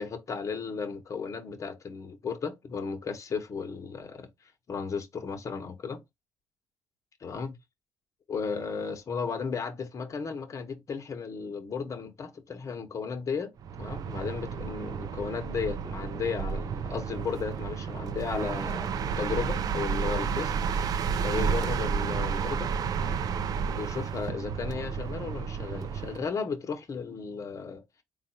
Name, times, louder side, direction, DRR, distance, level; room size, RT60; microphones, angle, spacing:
voice 1, 0.0-4.3 4.7-6.0 7.2-7.6 8.3-20.8 21.2-23.2 23.6-27.8, left 5 dB, 45° left, 1.0 m, -35 dB
sound 1, 13.6-26.3, right 6 dB, 55° right, 0.5 m, -31 dB
3.8 x 2.3 x 4.2 m
supercardioid pair, 80°, 8 cm